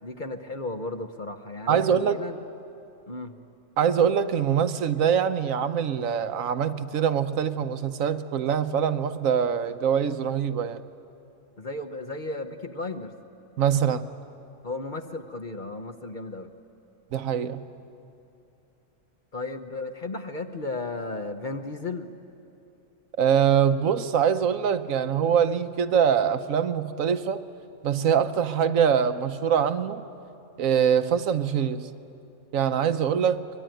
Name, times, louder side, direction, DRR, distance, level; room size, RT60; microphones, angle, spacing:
voice 1, 0.0-2.4 3.1-3.4 11.6-13.1 14.6-16.5 19.3-22.1, left 2 dB, 40° left, 1.0 m, -34 dB
voice 2, 1.7-2.2 3.8-10.8 13.6-14.1 17.1-17.6 23.2-27.4 27.8-30.0 30.6-31.9 32.5-33.4, right 8 dB, 75° right, 1.2 m, -23 dB
23.5 x 22.0 x 9.1 m
omnidirectional pair, 1.4 m